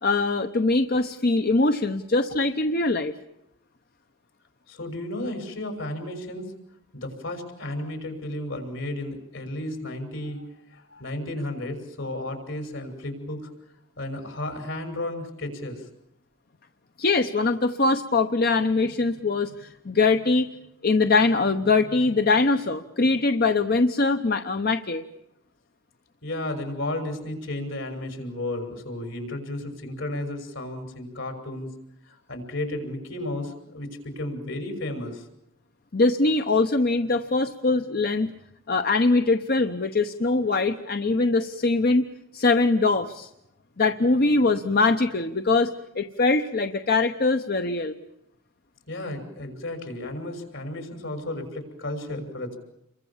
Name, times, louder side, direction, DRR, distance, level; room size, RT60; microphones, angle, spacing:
voice 1, 0.0-3.1 17.0-20.5 20.8-25.0 35.9-38.3 38.7-42.1 42.3-43.3 43.8-48.0, left 3 dB, 50° left, 7 dB, 1.0 m, -22 dB
voice 2, 4.7-6.5 6.9-13.5 14.0-15.9 26.2-31.7 32.0-35.3 48.9-52.6, left 1 dB, 75° left, 6 dB, 6.4 m, -33 dB
29.0 x 23.0 x 7.3 m, 0.85 s
head